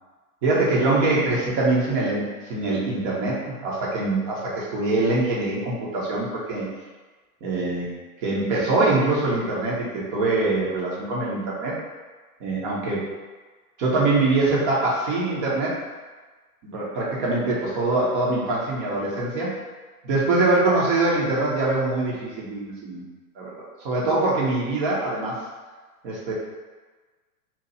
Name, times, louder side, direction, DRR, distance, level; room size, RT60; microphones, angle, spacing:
voice 1, 0.4-6.7 7.4-7.9 8.2-11.8 12.4-13.1 13.8-15.8 16.6-19.5 20.0-23.0 23.3-25.4 26.0-26.3, right 2 dB, 35° right, -6 dB, 1.1 m, -23 dB
2.9 x 2.8 x 4.2 m, 1.3 s
figure-of-eight pair, 100°, 46 cm